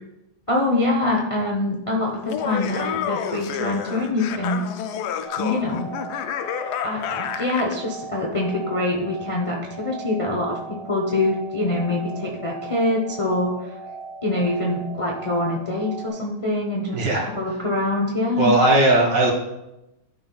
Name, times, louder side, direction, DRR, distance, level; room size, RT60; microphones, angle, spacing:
voice 1, 0.5-4.7 5.4-5.9 6.8-13.7 14.2-18.5, left 2 dB, 35° left, -2 dB, 0.5 m, -24 dB
Laughter, 2.2-7.8, left 9 dB, 75° left, 1.0 m, -29 dB
sound 1, 5.2-16.1, right 4 dB, 5° left, 1.3 m, -38 dB
voice 2, 16.9-17.2 18.4-19.3, right 2 dB, 75° right, -1 dB, 2.4 m, -17 dB
12.5 x 5.4 x 2.3 m, 0.94 s
omnidirectional pair, 2.0 m